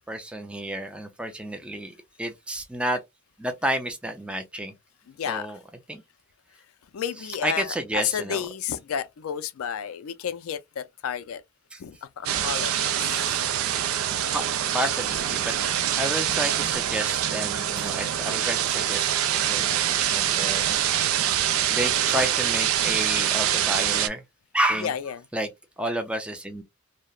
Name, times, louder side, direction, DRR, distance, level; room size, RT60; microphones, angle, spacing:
voice 1, 0.0-3.0 3.4-4.7 5.3-5.6 5.9-6.0 7.4-8.4 11.7-11.8 14.3-15.5 16.0-20.6 21.7-24.2 24.5-24.9 25.3-25.5 25.8-26.6, right 1 dB, 5° right, 0.4 m, -30 dB
voice 2, 5.1-5.6 6.9-11.4 11.8-13.1 24.8-25.2, left 8 dB, 80° left, 0.4 m, -31 dB
sound 1, 12.3-24.1, right 10 dB, 80° right, 0.4 m, -25 dB
2.8 x 2.0 x 2.2 m
head